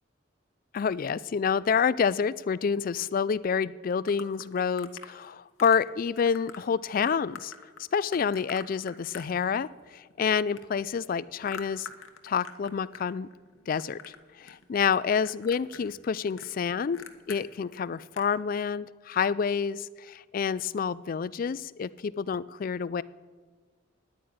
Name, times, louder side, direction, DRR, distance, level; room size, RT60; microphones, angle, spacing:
voice 1, 0.7-7.5 7.9-11.9 12.2-13.3 13.7-23.0, left 6 dB, 45° left, 19 dB, 0.3 m, -28 dB
sound 1, 4.1-5.1 5.6-5.9 6.2-6.6 7.1-9.8 10.1-13.1 13.3-14.2 14.5-15.0 15.2-17.4 17.8-17.9 18.1-18.4, left 6 dB, 85° left, 1.1 m, -45 dB
10.0 x 9.4 x 8.8 m, 1.5 s
head